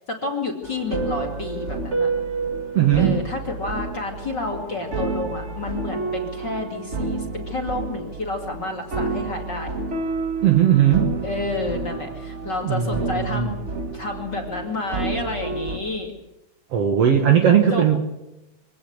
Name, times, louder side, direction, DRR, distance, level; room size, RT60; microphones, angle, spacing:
voice 1, 0.1-2.1 2.9-9.7 11.2-13.6 13.9-16.1 17.7-17.8, left 3 dB, 35° left, 1 dB, 2.1 m, -30 dB
sound 1, 0.6-15.8, right 3 dB, 65° right, 0.7 m, -29 dB
voice 2, 2.7-3.2 10.4-11.1 12.6-13.5 16.7-18.0, right 9 dB, 85° right, 5 dB, 1.3 m, -18 dB
25.0 x 17.5 x 8.0 m, 0.95 s
omnidirectional pair, 5.1 m